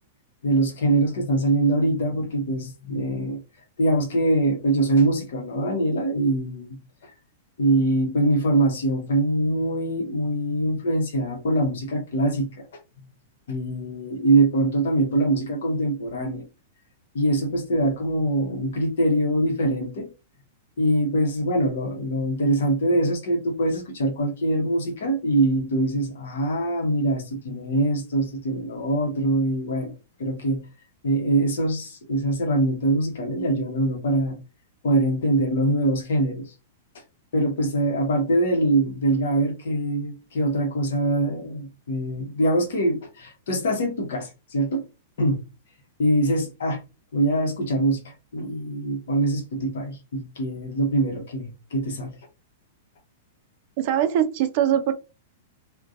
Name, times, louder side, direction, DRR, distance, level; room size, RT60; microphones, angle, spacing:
voice 1, 0.4-3.4 3.8-6.7 7.0-7.1 7.6-12.7 13.5-16.4 17.1-20.1 20.8-29.9 30.2-30.6 31.0-34.4 34.8-36.5 37.3-44.8 45.2-45.4 46.0-46.8 47.1-52.1, right 1 dB, 70° left, 0.8 m, -23 dB
voice 2, 53.8-54.9, right 10 dB, 50° right, 0.4 m, -22 dB
2.5 x 2.2 x 2.4 m
hypercardioid pair, 105°, 0 cm